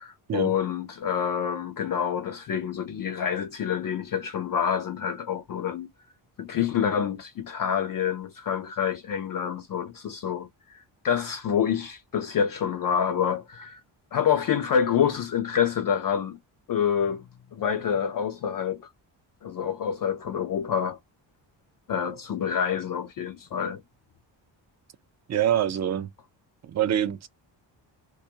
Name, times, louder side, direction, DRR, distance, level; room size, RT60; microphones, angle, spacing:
voice 1, 0.0-5.9 6.4-13.8 14.1-16.4 16.7-17.2 17.5-18.9 19.4-21.0 21.9-23.8, left 8 dB, 50° left, 0.4 m, -27 dB
voice 2, 25.3-26.1 26.6-27.3, right 10 dB, 40° right, 0.4 m, -25 dB
2.3 x 2.0 x 2.7 m
cardioid pair, 80°, 46 cm